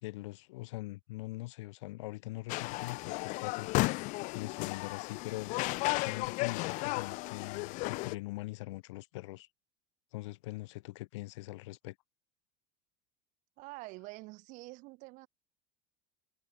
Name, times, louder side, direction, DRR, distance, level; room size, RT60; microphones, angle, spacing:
voice 1, 0.0-4.0 4.3-5.5 6.0-9.5 10.1-12.0, left 20 dB, 85° left, 3.9 m, -42 dB
sound 1, 2.5-8.2, left 24 dB, 60° left, 0.9 m, -34 dB
voice 2, 13.6-15.3, right 23 dB, 60° right, 2.5 m, -47 dB
supercardioid pair, 130°, 15 cm